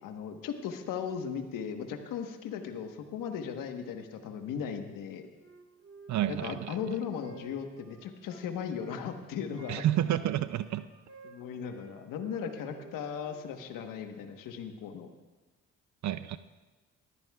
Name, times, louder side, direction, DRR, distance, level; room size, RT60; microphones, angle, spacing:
voice 1, 0.0-5.3 6.3-9.8 11.2-15.1, left 7 dB, 80° left, 6 dB, 1.3 m, -37 dB
Wind instrument woodwind instrument, 5.4-9.0 9.5-11.9 12.2-13.5, right 4 dB, 40° right, 1.9 m, -53 dB
voice 2, 6.1-6.8 9.7-10.9 16.0-16.4, right 12 dB, 60° right, 14 dB, 0.5 m, -29 dB
20.0 x 14.5 x 2.3 m, 1.2 s
supercardioid pair, 60°, 32 cm